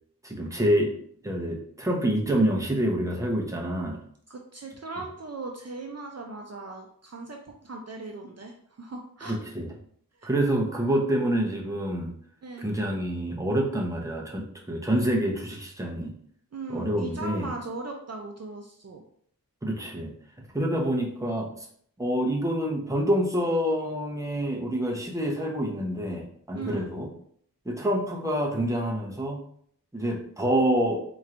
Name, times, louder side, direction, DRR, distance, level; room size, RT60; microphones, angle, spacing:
voice 1, 0.2-1.0 1.2-4.0 9.2-9.7 10.2-12.1 12.6-16.1 16.7-17.5 19.6-20.1 20.5-21.7 22.0-27.1 27.7-29.4 29.9-31.0, right 1 dB, 10° right, 0 dB, 0.7 m, -27 dB
voice 2, 4.3-9.4 10.1-10.3 12.4-12.7 16.5-19.0 26.5-26.9, right 3 dB, 45° right, 1 dB, 0.5 m, -38 dB
4.3 x 3.0 x 2.5 m, 0.62 s
wide cardioid pair, 75°, 36 cm